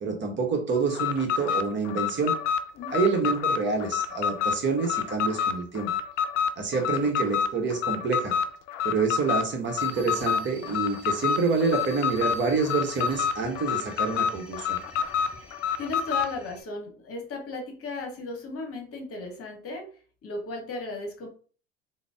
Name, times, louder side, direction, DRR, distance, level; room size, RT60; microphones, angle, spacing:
voice 1, 0.0-2.3 2.9-5.9 6.6-8.3 8.8-14.8, right 4 dB, 30° right, 3 dB, 0.9 m, -27 dB
Alarm, 0.9-16.3, left 7 dB, 70° left, 0.5 m, -28 dB
voice 2, 2.7-3.1 6.7-7.1 15.4-19.9 20.2-21.3, left 3 dB, 40° left, 2 dB, 1.0 m, -36 dB
sound 1, 9.8-16.6, equal, 5° right, 1.1 m, -47 dB
3.8 x 2.0 x 3.4 m, 0.42 s
hypercardioid pair, 70°, 36 cm